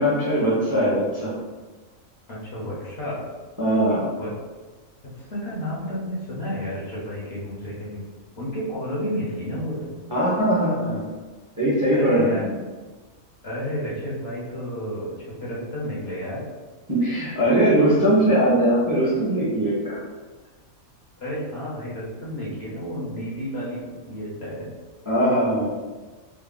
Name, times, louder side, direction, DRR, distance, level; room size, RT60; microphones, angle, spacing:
voice 1, 0.0-1.3 3.6-4.1 10.1-11.0 11.6-12.5 16.9-20.0 25.0-25.7, right 1 dB, 15° right, -8 dB, 0.8 m, -20 dB
voice 2, 2.3-3.2 4.2-4.3 5.2-8.0 8.4-10.0 11.9-12.4 13.4-16.4 21.2-24.7, equal, 50° left, -6 dB, 1.1 m, -31 dB
3.6 x 2.1 x 3.7 m, 1.3 s
omnidirectional pair, 1.4 m